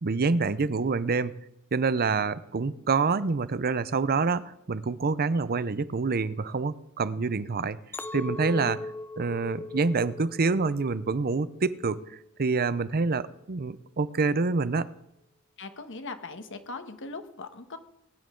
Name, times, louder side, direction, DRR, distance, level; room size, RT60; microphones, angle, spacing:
voice 1, 0.0-1.3 1.7-7.8 8.1-8.8 9.2-14.9, right 4 dB, 45° right, 16 dB, 0.6 m, -27 dB
Chink clink, 7.9-12.3 12.7-13.2, left 2 dB, 10° left, 0.5 m, -39 dB
voice 2, 15.6-17.8, left 3 dB, 60° left, 8 dB, 1.3 m, -40 dB
20.5 x 10.5 x 3.8 m, 0.82 s
head